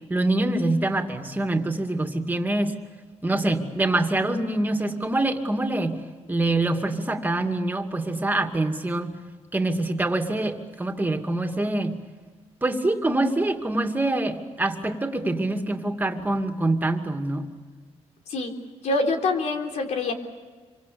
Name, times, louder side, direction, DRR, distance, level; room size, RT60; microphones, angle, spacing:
voice 1, 0.1-2.8 3.2-6.0 6.3-9.2 9.5-12.0 12.6-17.5, right 2 dB, 15° right, 5 dB, 2.5 m, -25 dB
voice 2, 18.8-20.1, left 3 dB, 80° left, 4 dB, 3.7 m, -25 dB
27.5 x 25.0 x 7.1 m, 1.4 s
cardioid pair, 115°, 12 cm